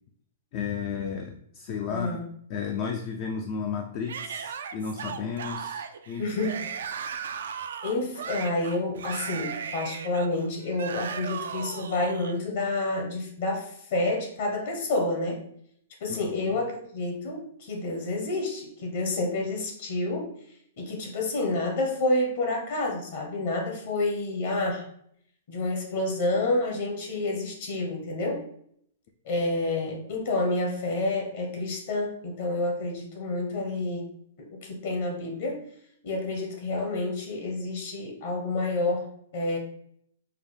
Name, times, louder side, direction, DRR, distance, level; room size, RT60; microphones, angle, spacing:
voice 1, 0.5-6.3 16.1-16.6, left 6 dB, 40° left, 3 dB, 0.4 m, -33 dB
voice 2, 1.9-2.2 6.2-6.6 7.8-15.4 16.0-20.3 20.8-24.9 25.5-28.4 29.2-34.1 34.5-35.6 36.0-39.6, left 2 dB, 60° left, 1 dB, 1.1 m, -29 dB
Yell / Screaming, 4.1-12.4, right 7 dB, 75° right, 0.3 m, -36 dB
4.6 x 2.1 x 3.3 m, 0.67 s
hypercardioid pair, 145°, 0 cm